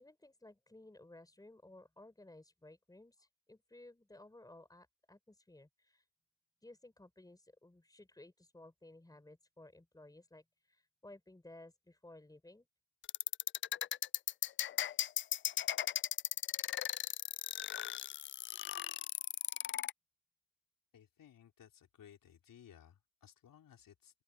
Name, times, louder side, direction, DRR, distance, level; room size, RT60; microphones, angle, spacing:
voice 1, 0.0-6.0 6.6-12.7, left 2 dB, 10° left, 5.5 m, -57 dB
sound 1, 13.0-19.9, left 11 dB, 30° left, 0.3 m, -36 dB
voice 2, 20.9-24.2, left 9 dB, 50° left, 4.4 m, -60 dB
open air
cardioid pair, 95°, 42 cm